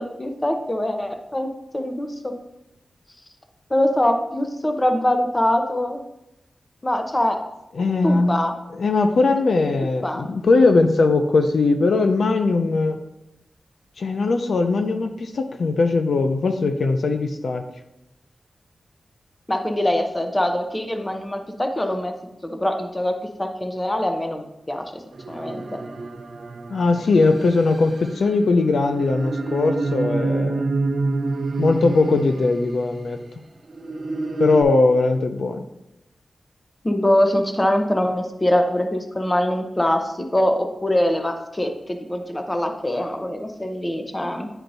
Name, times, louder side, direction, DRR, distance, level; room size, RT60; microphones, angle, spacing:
voice 1, 0.0-2.3 3.7-6.0 6.8-7.4 8.0-8.5 10.0-10.3 19.5-22.1 22.4-23.1 23.4-24.8 25.3-25.6 36.8-44.5, left 1 dB, 15° left, 4 dB, 0.7 m, -23 dB
voice 2, 7.7-8.3 8.7-13.0 14.0-17.6 26.7-30.7 31.6-33.2 34.4-35.6, left 3 dB, 75° left, 6 dB, 0.5 m, -20 dB
sound 1, 25.1-33.0 33.6-34.6, right 3 dB, 55° right, 0.6 m, -28 dB
9.9 x 4.5 x 2.7 m, 0.89 s
wide cardioid pair, 125°, 0 cm